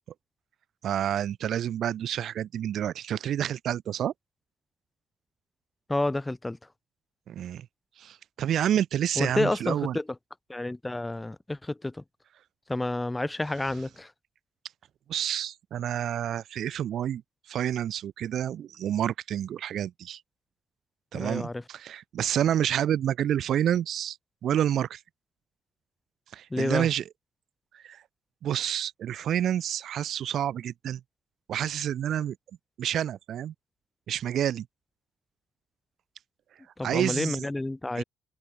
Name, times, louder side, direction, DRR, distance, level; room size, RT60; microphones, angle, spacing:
voice 1, 0.8-4.1 7.3-7.7 8.0-10.0 15.1-17.2 17.5-20.2 21.1-24.2 24.4-25.0 26.3-27.0 27.7-28.0 28.4-31.0 31.5-32.4 32.8-33.5 34.1-34.7 36.8-37.5 38.0-38.1, right 10 dB, 70° right, 1.2 m, -29 dB
voice 2, 5.9-6.6 9.2-10.1 10.5-12.0 12.7-14.1 21.1-21.6 26.5-26.9 36.8-38.0, left 2 dB, 15° left, 3.7 m, -29 dB
cardioid pair, 90°, 0 cm